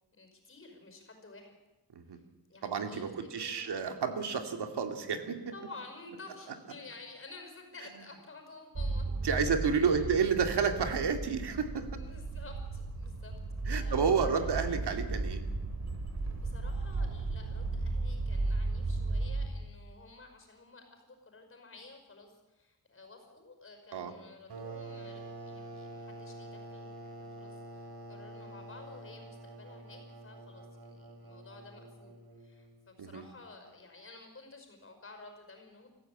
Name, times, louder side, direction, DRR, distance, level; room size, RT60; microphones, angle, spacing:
voice 1, 0.1-1.6 2.1-2.2 2.5-3.7 5.5-9.5 9.8-10.0 12.0-13.3 13.6-14.6 16.4-35.9, left 3 dB, 35° left, 5 dB, 5.5 m, -52 dB
voice 2, 2.6-5.4 9.2-11.9 13.7-15.4 23.9-24.1 33.0-33.2, right 6 dB, 90° right, 6 dB, 2.4 m, -30 dB
sound 1, 8.7-19.5, right 2 dB, 45° right, 3.2 m, -35 dB
sound 2, 24.5-32.9, right 2 dB, 70° right, 3.5 m, -47 dB
25.0 x 15.0 x 8.7 m, 1.1 s
wide cardioid pair, 140°, 39 cm